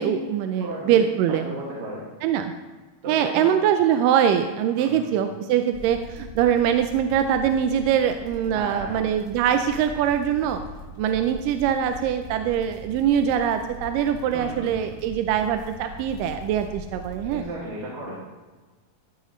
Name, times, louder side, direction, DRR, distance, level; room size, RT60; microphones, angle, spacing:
voice 1, 0.0-1.4 2.2-2.5 3.1-10.6 11.0-17.4, right 9 dB, 80° right, 7 dB, 2.0 m, -23 dB
voice 2, 0.6-2.0 3.0-3.5 4.8-5.3 8.5-9.0 14.3-14.8 17.2-18.2, right 1 dB, 55° right, -6 dB, 3.2 m, -35 dB
sound 1, 5.7-17.4, right 1 dB, 20° left, 1.9 m, -41 dB
14.0 x 10.5 x 3.1 m, 1.3 s
omnidirectional pair, 4.3 m